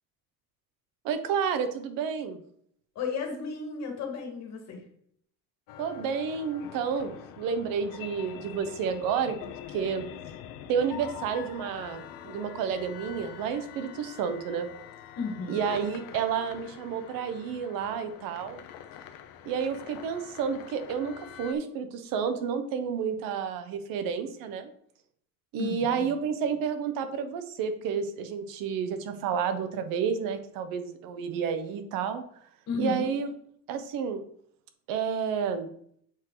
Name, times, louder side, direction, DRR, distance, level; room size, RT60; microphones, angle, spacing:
voice 1, 1.0-2.4 5.8-9.4 9.7-10.1 10.7-14.7 15.5-18.6 19.4-24.7 25.5-32.2 32.8-33.3 33.7-34.2 34.9-35.7, right 6 dB, 80° right, 9 dB, 1.1 m, -30 dB
voice 2, 3.0-4.8 15.2-15.6 25.6-26.0 32.7-33.1, left 5 dB, 50° left, 2 dB, 2.0 m, -34 dB
sound 1, 5.7-21.5, left 10 dB, 80° left, 0.8 m, -45 dB
7.3 x 4.7 x 3.9 m, 0.64 s
cardioid pair, 150°, 33 cm